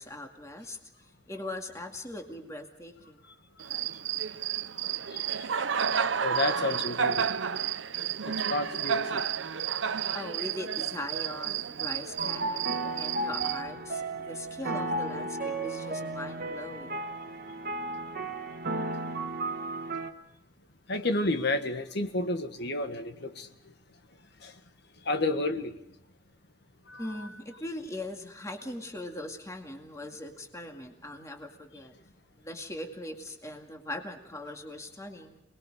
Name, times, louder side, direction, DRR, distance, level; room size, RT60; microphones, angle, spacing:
voice 1, 0.0-3.2 10.1-17.0 27.0-31.9 32.4-35.4, left 1 dB, 15° left, 3 dB, 2.2 m, -40 dB
Cricket, 3.6-13.6, right 8 dB, 80° right, 0.7 m, -31 dB
voice 2, 4.9-5.5 6.2-7.3 8.2-9.2 20.9-23.7 24.4-24.6 25.0-25.7 26.9-27.4, left 2 dB, 65° left, 8 dB, 1.5 m, -31 dB
sound 1, 12.2-20.1, right 2 dB, 55° right, 1.4 m, -34 dB
27.5 x 20.5 x 5.0 m, 0.85 s
head